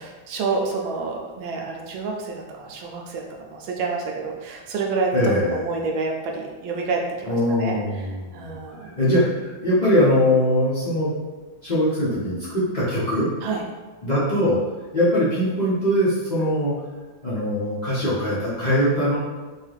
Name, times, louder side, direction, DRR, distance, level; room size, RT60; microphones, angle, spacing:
voice 1, 0.0-3.2 3.5-5.2 5.5-7.3 7.6-7.8 8.3-8.9 13.4-13.6, right 4 dB, 85° right, 0 dB, 1.4 m, -28 dB
voice 2, 5.1-5.6 7.2-8.5 9.0-11.1 11.6-13.3 14.0-14.6 14.9-16.8 17.2-19.2, left 1 dB, 45° left, -11 dB, 0.5 m, -21 dB
4.4 x 2.4 x 3.3 m, 1.3 s
omnidirectional pair, 2.2 m